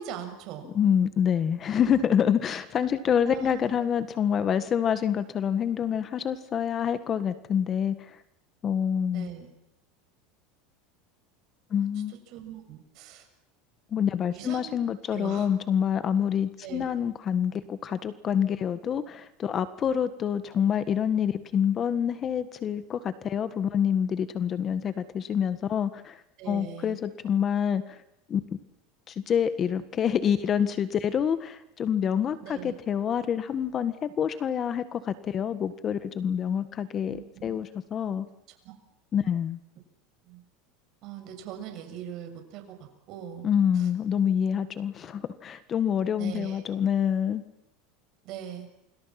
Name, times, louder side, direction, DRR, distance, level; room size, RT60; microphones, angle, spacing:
voice 1, 0.0-0.7 3.2-3.6 9.1-9.5 11.7-11.9 12.3-13.2 14.3-14.7 15.1-15.5 16.6-16.9 26.4-27.0 32.4-32.7 37.1-37.5 38.6-38.8 40.3-40.4 41.0-43.5 43.7-43.9 46.2-46.6 48.2-48.7, right 9 dB, 50° right, 6 dB, 6.8 m, -41 dB
voice 2, 0.7-8.2 8.6-9.3 11.7-12.1 13.9-26.2 26.5-28.0 28.3-28.4 29.1-37.2 37.4-38.3 39.1-39.6 43.4-47.4, left 8 dB, 30° left, 13 dB, 1.6 m, -27 dB
29.5 x 25.5 x 6.0 m, 0.82 s
supercardioid pair, 135°, 0 cm